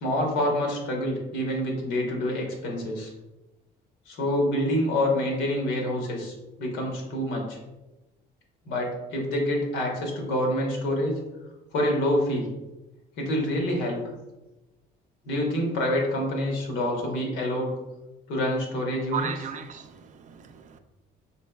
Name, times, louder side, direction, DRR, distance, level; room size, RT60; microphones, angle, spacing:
voice 1, 0.0-3.1 4.1-7.6 8.7-11.2 11.7-12.5 13.2-14.0 15.2-17.7 18.3-19.3, left 1 dB, 90° left, 1.1 m, -27 dB
voice 2, 19.1-20.8, right 7 dB, 45° right, 0.4 m, -35 dB
4.4 x 3.1 x 2.3 m
cardioid pair, 95°, 18 cm